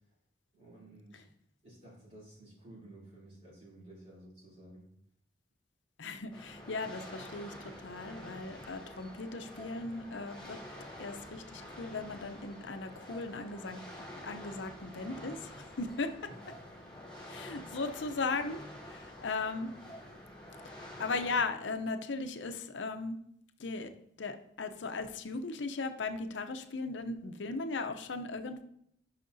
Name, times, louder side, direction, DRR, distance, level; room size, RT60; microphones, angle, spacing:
voice 1, 0.5-1.3 1.6-4.9 16.3-16.4, right 1 dB, 35° right, -7 dB, 3.2 m, -53 dB
voice 2, 6.0-10.6 11.0-16.1 17.3-19.7 21.0-23.2 23.6-23.9 24.2-28.6, left 3 dB, 70° left, 8 dB, 0.6 m, -37 dB
sound 1, 6.3-21.4, left 1 dB, 5° left, 2.6 m, -48 dB
9.3 x 5.7 x 2.7 m, 0.71 s
head